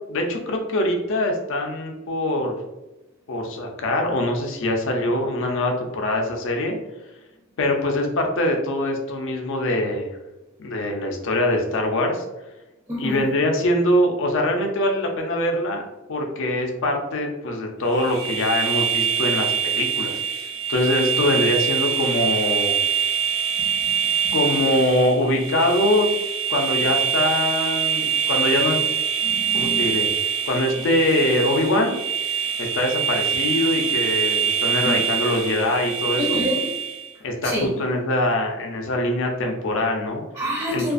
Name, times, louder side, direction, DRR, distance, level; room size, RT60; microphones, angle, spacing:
voice 1, 0.1-2.6 3.3-6.8 7.6-10.2 10.6-12.2 13.0-15.8 16.1-20.2 20.7-22.8 24.3-26.1 26.5-28.8 29.5-30.1 30.5-32.0 32.6-36.4 37.2-40.2 40.7-40.8, left 1 dB, 65° left, 2 dB, 0.5 m, -23 dB
voice 2, 12.9-13.3 23.6-24.0 24.2-24.4 29.2-29.9 34.8-35.0 36.2-36.7 37.4-37.8 40.3-40.9, equal, 20° right, -5 dB, 0.5 m, -28 dB
sound 1, 17.9-37.1, right 7 dB, 75° right, 0.8 m, -24 dB
2.4 x 2.3 x 2.4 m, 1.0 s
head